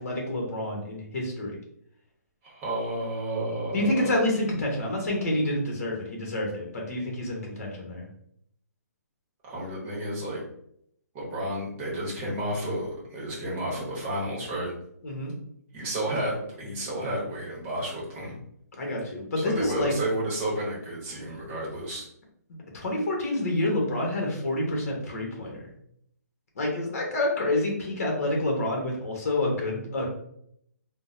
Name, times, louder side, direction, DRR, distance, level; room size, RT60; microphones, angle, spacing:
voice 1, 0.0-1.6 3.7-8.0 15.0-15.3 18.7-19.9 22.7-25.6 26.6-30.1, left 1 dB, 55° left, 0 dB, 1.1 m, -28 dB
voice 2, 2.4-4.1 9.5-10.4 11.1-14.7 15.7-18.3 19.4-22.0, right 1 dB, 20° right, -4 dB, 1.0 m, -31 dB
3.6 x 2.2 x 2.6 m, 0.72 s
hypercardioid pair, 160°, 9 cm